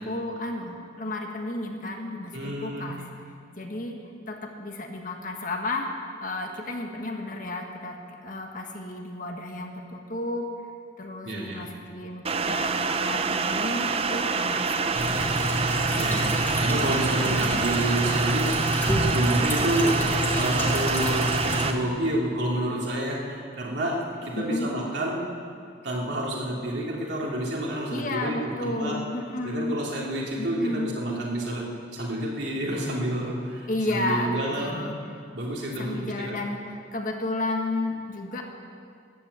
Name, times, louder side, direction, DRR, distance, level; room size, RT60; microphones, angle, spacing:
voice 1, 0.0-3.1 3.6-4.0 4.3-5.9 6.2-10.5 11.0-14.9 17.2-17.6 24.4-24.7 27.9-29.8 30.4-30.9 33.7-34.9 35.4-38.4, left 2 dB, 45° left, 2 dB, 1.5 m, -32 dB
voice 2, 2.3-2.9 11.2-11.6 15.9-16.3 16.6-20.0 20.3-25.3 25.8-29.0 29.4-34.9 35.3-36.3, right 1 dB, 65° right, -3 dB, 3.1 m, -29 dB
sound 1, 12.2-21.7, right 4 dB, 30° right, 0.6 m, -27 dB
sound 2, 14.9-21.7, equal, 10° left, 2.0 m, -28 dB
13.5 x 11.0 x 8.3 m, 2.3 s
head